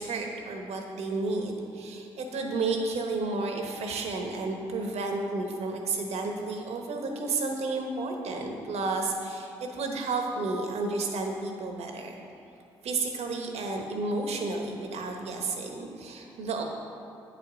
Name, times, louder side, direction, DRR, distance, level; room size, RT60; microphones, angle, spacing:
voice 1, 0.0-12.1 12.8-16.6, right 3 dB, 70° right, 3 dB, 1.1 m, -32 dB
8.5 x 5.1 x 6.2 m, 2.7 s
hypercardioid pair, 45°, 11 cm